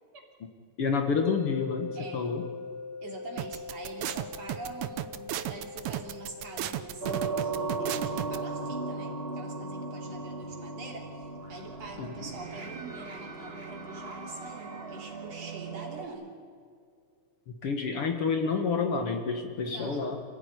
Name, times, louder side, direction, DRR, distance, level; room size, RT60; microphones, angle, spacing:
voice 1, 0.8-2.4 12.0-12.1 17.5-20.2, left 5 dB, 55° left, 5 dB, 2.2 m, -29 dB
sound 1, 1.3-14.3, left 4 dB, 90° left, 3.3 m, -45 dB
voice 2, 2.0-2.3 3.0-16.3 19.7-20.1, right 3 dB, 55° right, 0 dB, 4.3 m, -44 dB
sound 2, 3.4-8.4, right 13 dB, 75° right, 2.1 m, -34 dB
sound 3, 7.0-16.0, right 3 dB, 30° right, 1.3 m, -37 dB
27.0 x 16.0 x 9.7 m, 2.2 s
omnidirectional pair, 3.4 m